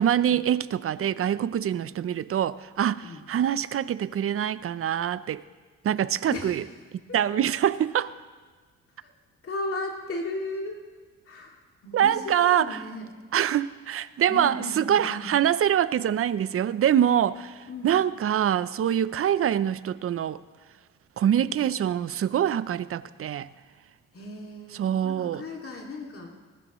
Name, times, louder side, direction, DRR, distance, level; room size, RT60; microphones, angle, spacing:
voice 1, 0.0-5.4 5.8-6.6 7.1-8.1 11.9-12.8 13.3-20.4 21.2-23.5 24.7-25.4, right 10 dB, 50° right, 0.6 m, -25 dB
voice 2, 6.3-6.7 9.0-9.1 9.4-10.8 11.3-13.1 14.3-15.3 17.7-17.9 24.1-26.3, left 2 dB, 45° left, 2.5 m, -36 dB
20.0 x 19.0 x 3.1 m
cardioid pair, 90°, 30 cm